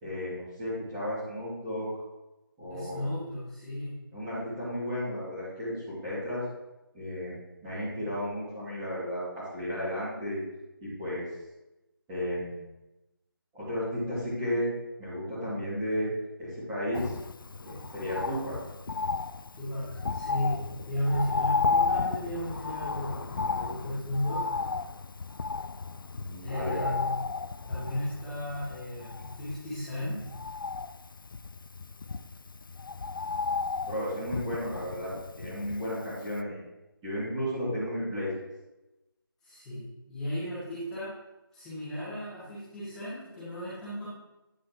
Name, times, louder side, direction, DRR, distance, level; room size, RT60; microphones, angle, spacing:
voice 1, 0.0-1.9 2.6-3.1 4.1-6.4 6.9-7.3 7.6-10.4 10.8-11.2 12.1-12.6 13.5-14.7 15.0-16.1 16.4-17.1 17.6-18.5 26.2-26.9 33.9-35.1 35.4-36.6 37.0-38.4, equal, 10° right, -12 dB, 2.5 m, -33 dB
voice 2, 2.7-3.9 19.5-19.9 20.1-20.5 20.8-24.4 26.4-27.1 27.7-30.2 39.4-41.1 41.5-44.1, left 1 dB, 5° left, -15 dB, 2.6 m, -34 dB
Bird, 16.9-36.0 36.4-36.5, left 4 dB, 65° left, 0.4 m, -33 dB
9.7 x 6.2 x 3.0 m, 0.98 s
figure-of-eight pair, 160°, 12 cm